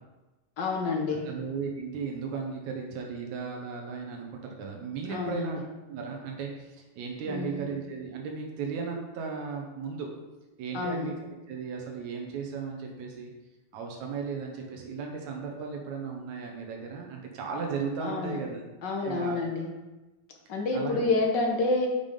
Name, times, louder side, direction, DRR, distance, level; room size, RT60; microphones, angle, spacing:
voice 1, 0.6-1.3 5.1-5.5 7.3-7.6 10.7-11.1 18.0-18.4 18.8-19.7 20.5-21.9, left 3 dB, 60° left, 1 dB, 1.1 m, -28 dB
voice 2, 1.1-5.6 5.9-10.1 10.6-13.3 13.7-18.6 19.0-19.4 20.7-21.0, right 5 dB, 75° right, 1 dB, 2.3 m, -36 dB
6.9 x 5.4 x 5.3 m, 1.1 s
omnidirectional pair, 3.3 m